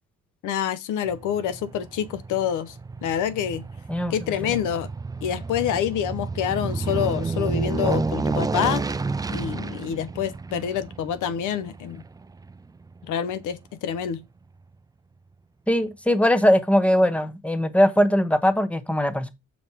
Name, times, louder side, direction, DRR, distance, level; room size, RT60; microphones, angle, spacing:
voice 1, 0.4-3.6 4.1-4.9 5.2-8.8 9.3-12.0 13.0-14.2, left 9 dB, 85° left, 0.8 m, -27 dB
Aircraft, 1.1-13.6 14.0-14.1, right 4 dB, 15° right, 0.4 m, -31 dB
voice 2, 15.7-19.3, equal, 5° left, 1.1 m, -20 dB
7.3 x 5.1 x 4.6 m
cardioid pair, 90°, 30 cm